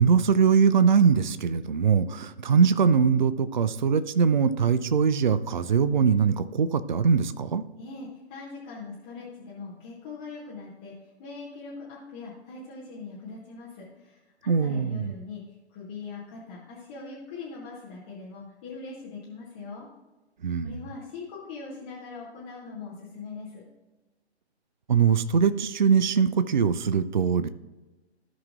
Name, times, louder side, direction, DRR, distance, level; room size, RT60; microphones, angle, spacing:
voice 1, 0.0-7.6 14.5-15.1 20.4-20.8 24.9-27.5, right 6 dB, 45° right, 13 dB, 0.5 m, -22 dB
voice 2, 7.8-15.4 15.7-19.9 20.6-23.6, left 4 dB, 10° left, -6 dB, 0.7 m, -41 dB
15.0 x 5.8 x 2.5 m, 1.1 s
figure-of-eight pair, 135°, 34 cm